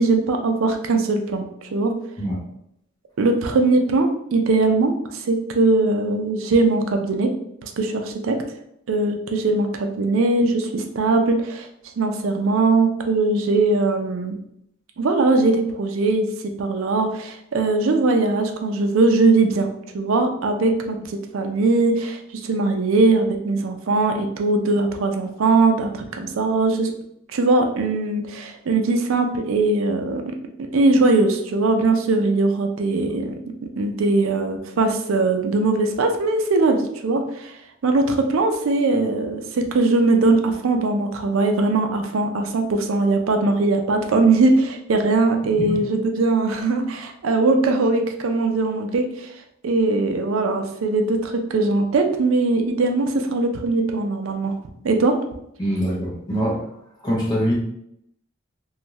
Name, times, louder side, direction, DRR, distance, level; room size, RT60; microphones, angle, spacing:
voice 1, 0.0-2.0 3.2-7.3 7.6-8.4 8.9-11.7 12.0-14.3 15.0-16.3 16.6-26.9 27.3-30.3 30.7-33.3 33.8-37.6 37.8-49.3 49.6-54.6 54.8-55.2, right 3 dB, 85° right, 4 dB, 0.4 m, -20 dB
voice 2, 55.6-56.7 57.0-57.5, equal, 20° left, -5 dB, 0.8 m, -23 dB
2.6 x 2.3 x 3.0 m, 0.75 s
head